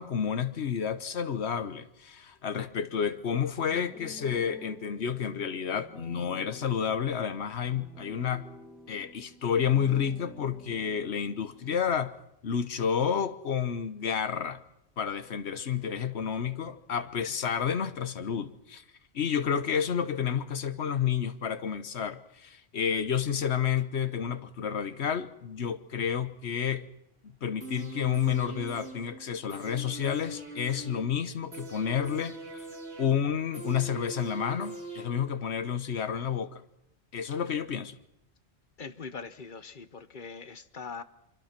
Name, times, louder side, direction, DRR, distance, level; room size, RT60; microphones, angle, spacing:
voice 1, 0.0-8.5 8.9-12.1 12.4-14.6 15.0-18.8 19.1-26.9 27.2-32.6 33.0-36.6 37.1-38.0, left 8 dB, 80° left, 1.4 m, -30 dB
sound 1, 3.7-11.9, equal, ahead, 2.1 m, -50 dB
sound 2, 27.6-35.6 35.9-36.0, right 2 dB, 85° right, 3.7 m, -43 dB
voice 2, 38.8-41.0, left 5 dB, 50° left, 1.2 m, -42 dB
24.5 x 24.5 x 5.9 m
omnidirectional pair, 1.1 m